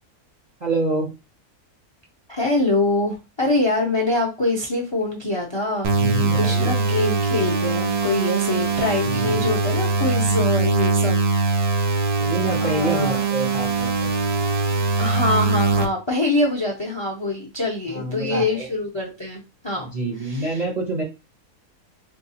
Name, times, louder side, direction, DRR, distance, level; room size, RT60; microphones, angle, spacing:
voice 1, 0.6-1.1 5.9-6.7 9.0-9.6 12.2-14.1 17.9-18.7 19.8-21.0, right 2 dB, 40° right, -2 dB, 0.7 m, -27 dB
voice 2, 2.3-11.3 12.6-13.2 15.0-19.9 20.3-20.6, left 2 dB, 25° left, 0 dB, 0.6 m, -24 dB
sound 1, 5.8-15.8, right 4 dB, 80° right, 1.3 m, -22 dB
4.6 x 2.3 x 2.7 m, 0.27 s
omnidirectional pair, 1.6 m